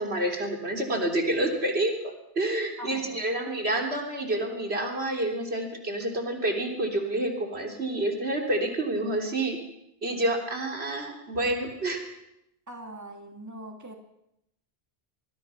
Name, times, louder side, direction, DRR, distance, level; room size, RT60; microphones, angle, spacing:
voice 1, 0.0-9.6 10.0-12.1, right 1 dB, 75° right, 2 dB, 3.7 m, -28 dB
voice 2, 2.8-3.2 12.7-13.9, right 1 dB, 15° right, 3 dB, 2.4 m, -42 dB
26.0 x 20.5 x 5.8 m, 0.81 s
omnidirectional pair, 1.1 m